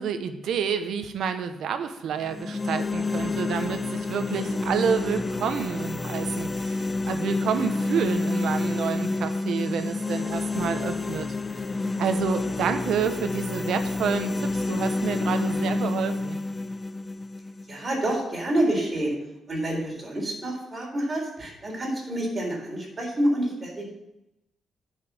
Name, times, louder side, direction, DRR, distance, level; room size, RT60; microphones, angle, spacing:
voice 1, 0.0-11.3 12.0-16.4, right 7 dB, 80° right, 8 dB, 1.0 m, -29 dB
sound 1, 2.2-18.2, left 3 dB, 25° left, 0.4 m, -29 dB
voice 2, 17.7-19.2 19.5-23.9, right 1 dB, 25° right, -2 dB, 3.9 m, -28 dB
9.7 x 5.6 x 7.0 m, 0.89 s
cardioid pair, 135°, 0 cm